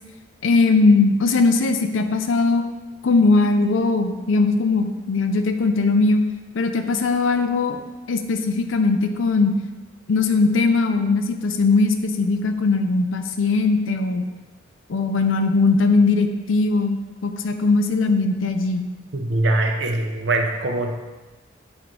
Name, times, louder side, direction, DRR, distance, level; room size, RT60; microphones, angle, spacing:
voice 1, 0.4-2.6 3.0-6.2 6.5-7.8 8.1-9.5 10.1-14.2 14.9-18.9, left 3 dB, 90° left, 6 dB, 0.5 m, -19 dB
voice 2, 19.1-20.9, right 2 dB, 65° right, 4 dB, 0.7 m, -22 dB
7.7 x 3.1 x 5.3 m, 1.2 s
head